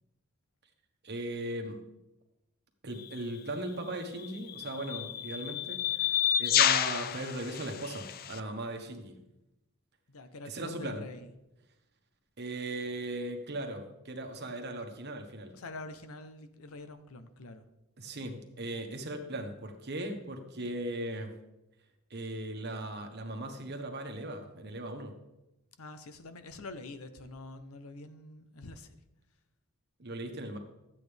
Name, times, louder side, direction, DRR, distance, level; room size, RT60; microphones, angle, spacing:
voice 1, 1.0-1.8 2.8-9.2 10.4-11.0 12.4-15.5 18.0-21.3 22.1-25.2 30.0-30.6, right 1 dB, 50° right, 4 dB, 1.3 m, -38 dB
sound 1, 3.0-3.2 4.2-8.4, left 11 dB, 45° left, 0.4 m, -30 dB
voice 2, 10.1-11.3 15.5-17.7 25.8-29.0, left 2 dB, 75° left, 11 dB, 0.8 m, -46 dB
12.5 x 8.4 x 3.4 m, 0.94 s
head